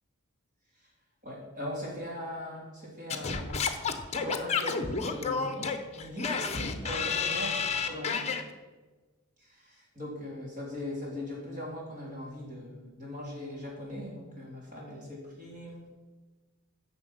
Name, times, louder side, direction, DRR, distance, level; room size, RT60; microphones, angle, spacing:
voice 1, 1.2-3.6 4.2-7.6 7.8-8.3 9.4-15.8, left 1 dB, 35° right, -3 dB, 4.0 m, -40 dB
Singing / Scratching (performance technique), 3.1-8.4, left 5 dB, 30° left, 1.0 m, -30 dB
10.5 x 6.8 x 7.9 m, 1.3 s
head